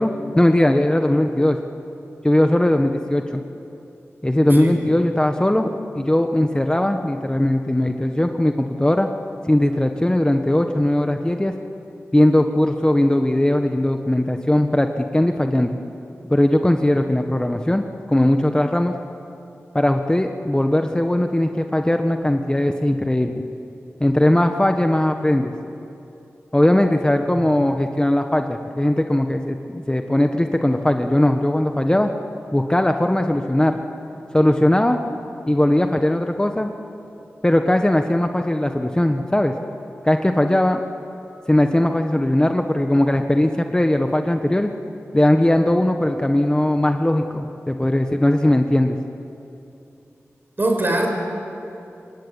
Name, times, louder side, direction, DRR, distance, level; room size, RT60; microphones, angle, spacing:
voice 1, 0.0-1.6 2.2-3.4 4.2-5.7 5.9-9.1 9.4-11.5 12.1-15.8 16.3-18.9 19.7-23.4 24.0-25.5 26.5-32.1 32.5-33.8 34.3-35.0 35.5-36.7 37.4-39.5 40.0-40.8 41.5-44.7 45.1-49.0, left 1 dB, 15° left, 5 dB, 1.4 m, -19 dB
voice 2, 50.6-51.1, right 1 dB, 45° right, 2 dB, 6.0 m, -21 dB
25.5 x 22.0 x 9.8 m, 2.8 s
wide cardioid pair, 60°, 5 cm